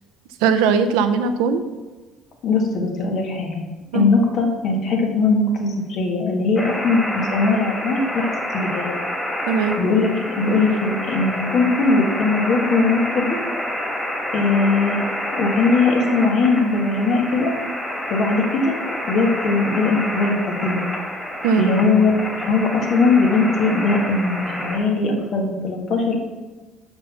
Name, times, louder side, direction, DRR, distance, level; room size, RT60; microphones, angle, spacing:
voice 1, 0.4-1.6 3.9-4.1 9.5-9.8 21.4-21.9, right 6 dB, 85° right, 9 dB, 0.6 m, -19 dB
voice 2, 2.4-3.7 3.9-9.0 9.8-13.3 14.3-15.0 15.3-17.6 18.1-18.7 19.1-20.8 21.6-22.1 22.3-26.2, left 3 dB, 60° left, 1 dB, 1.6 m, -20 dB
sound 1, 6.6-24.8, equal, 10° left, 2.0 m, -28 dB
5.9 x 5.3 x 5.6 m, 1.2 s
supercardioid pair, 75°, 0 cm